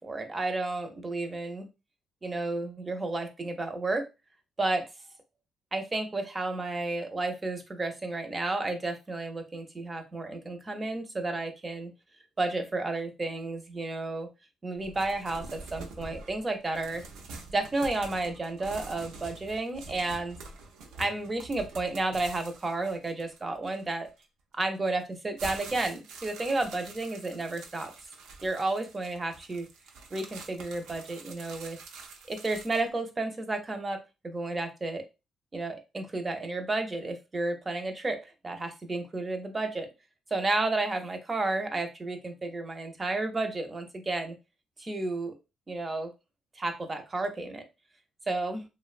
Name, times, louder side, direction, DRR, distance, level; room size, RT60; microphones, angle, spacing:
voice 1, 0.0-1.7 2.2-4.1 4.6-4.9 5.7-11.9 12.4-14.3 14.6-17.0 17.5-20.4 21.0-24.1 24.5-27.9 28.4-29.7 30.1-31.8 32.3-35.0 35.5-39.9 40.3-44.3 44.8-45.3 45.7-46.1 46.6-47.6 48.3-48.6, right 2 dB, 30° right, 6 dB, 0.6 m, -32 dB
sound 1, 14.8-24.2 24.9-32.9, right 3 dB, 90° right, 0.4 m, -46 dB
2.7 x 2.1 x 2.4 m, 0.26 s
cardioid pair, 90°, 0 cm